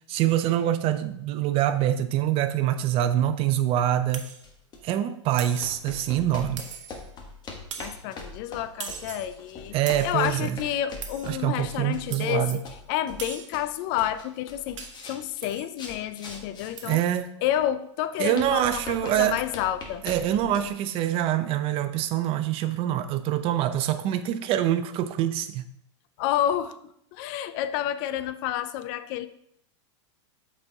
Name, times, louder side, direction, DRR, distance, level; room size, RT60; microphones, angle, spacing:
voice 1, 0.1-4.2 4.8-6.6 9.7-10.6 11.2-12.6 16.8-17.3 18.2-19.4 20.0-25.6, right 11 dB, 35° right, 10 dB, 0.6 m, -25 dB
sound 1, 4.1-4.5 5.4-5.8 6.6-7.1 7.7-8.1 8.8-9.3 9.9-10.3 11.0-11.4 12.1-12.7 13.2-13.6 14.8-15.1 15.4-15.7 16.8-17.0, right 7 dB, 80° right, 0.9 m, -40 dB
sound 2, 4.4-4.8 5.6-13.7 14.0-17.2 17.6-17.7 18.4-20.7, left 3 dB, 25° left, 1.2 m, -42 dB
voice 2, 7.8-9.8 10.0-12.6 12.9-14.8 15.1-17.0 17.4-20.0 26.2-26.8 27.1-29.3, left 11 dB, 45° left, 12 dB, 0.4 m, -29 dB
7.8 x 4.3 x 3.5 m, 0.74 s
hypercardioid pair, 120°, 16 cm